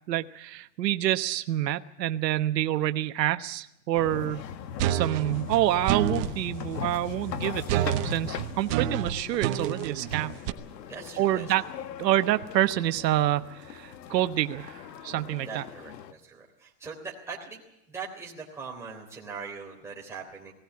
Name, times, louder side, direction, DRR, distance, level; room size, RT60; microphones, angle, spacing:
voice 1, 0.1-4.5 4.9-10.3 11.2-11.7 12.0-15.6, right 13 dB, 90° right, 10 dB, 1.1 m, -27 dB
sound 1, 3.9-16.1, left 9 dB, 85° left, 1.6 m, -40 dB
sound 2, 4.8-6.4 7.7-10.5, right 11 dB, 35° right, 1.1 m, -28 dB
voice 2, 10.9-11.5 15.4-20.5, right 5 dB, 5° right, -3 dB, 3.5 m, -41 dB
20.0 x 17.5 x 8.6 m, 0.80 s
supercardioid pair, 170°, 48 cm